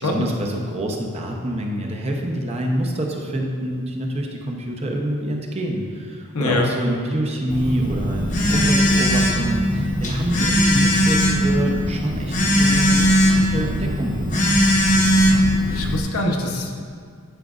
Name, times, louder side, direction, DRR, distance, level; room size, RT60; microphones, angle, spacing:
voice 1, 0.0-14.4, right 1 dB, 30° right, 0 dB, 0.6 m, -26 dB
voice 2, 6.3-6.7 15.7-16.7, left 2 dB, 75° left, 1 dB, 0.8 m, -23 dB
Telephone, 7.5-16.0, equal, 35° left, 0.8 m, -19 dB
11.5 x 5.1 x 2.4 m, 2.1 s
head